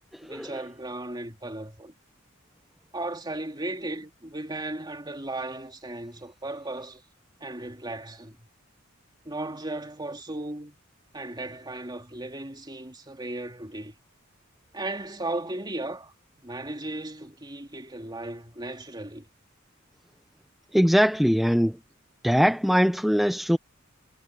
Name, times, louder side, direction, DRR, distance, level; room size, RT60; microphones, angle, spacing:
voice 1, 0.2-1.9 2.9-7.0 7.4-8.5 9.2-10.8 11.1-13.9 14.7-16.1 16.4-19.3, right 2 dB, 20° right, 2.9 m, -36 dB
voice 2, 20.7-21.7 22.2-23.6, equal, ahead, 0.6 m, -21 dB
head